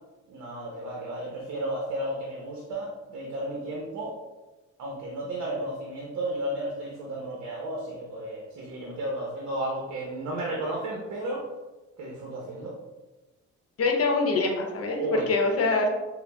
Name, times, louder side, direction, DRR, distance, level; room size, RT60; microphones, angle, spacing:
voice 1, 0.3-4.1 4.8-11.4 12.0-12.7 15.0-15.3, right 1 dB, 65° right, -2 dB, 0.8 m, -33 dB
voice 2, 13.8-15.9, left 3 dB, 50° left, 2 dB, 0.8 m, -24 dB
5.6 x 2.1 x 2.2 m, 1.1 s
cardioid pair, 90°, 30 cm